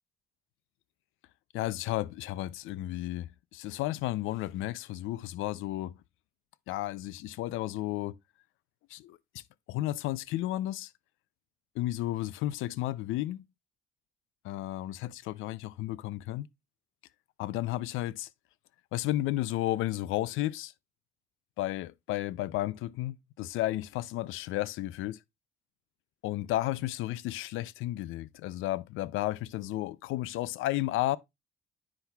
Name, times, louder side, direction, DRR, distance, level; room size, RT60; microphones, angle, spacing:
voice 1, 1.5-6.0 6.7-8.2 8.9-10.9 11.7-13.5 14.4-16.5 17.4-18.3 18.9-20.7 21.6-25.2 26.2-31.2, left 15 dB, 90° left, 0.4 m, -33 dB
9.8 x 5.8 x 2.3 m
cardioid pair, 90°, 20 cm